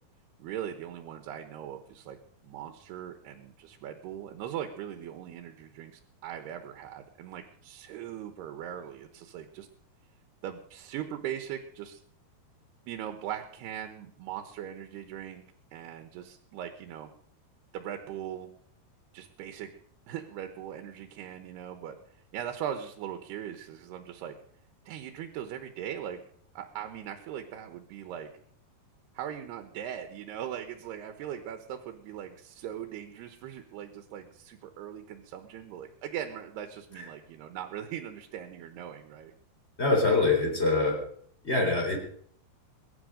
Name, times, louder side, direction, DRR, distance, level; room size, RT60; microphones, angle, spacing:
voice 1, 0.4-2.2 2.4-9.7 10.4-12.0 12.9-15.4 15.7-17.1 17.7-18.5 19.1-19.7 20.1-24.4 24.9-26.2 26.5-28.3 29.1-39.3, right 10 dB, 80° right, 6 dB, 3.1 m, -40 dB
voice 2, 39.8-41.1 41.4-42.0, left 3 dB, 15° left, 2 dB, 4.0 m, -24 dB
22.0 x 11.0 x 5.1 m, 0.63 s
omnidirectional pair, 4.6 m